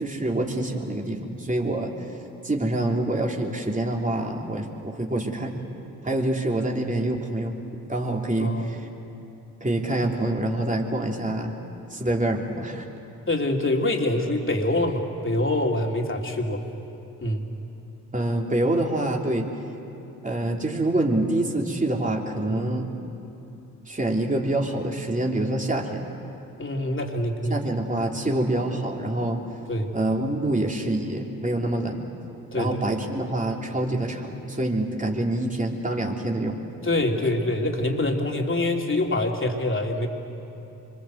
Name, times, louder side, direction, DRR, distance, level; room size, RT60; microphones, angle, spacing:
voice 1, 0.0-1.9 2.4-5.6 6.0-7.5 7.9-8.9 9.6-11.5 11.9-12.8 18.1-19.5 20.2-22.9 23.9-26.1 27.5-29.4 29.9-32.1 32.5-36.6, right 1 dB, 20° right, 0 dB, 3.3 m, -26 dB
voice 2, 13.3-16.6 17.2-17.4 22.5-22.7 26.6-27.6 29.7-29.9 32.5-32.7 36.8-40.1, left 1 dB, 35° left, 1 dB, 3.3 m, -25 dB
25.5 x 21.5 x 8.1 m, 2.8 s
supercardioid pair, 45°, 37 cm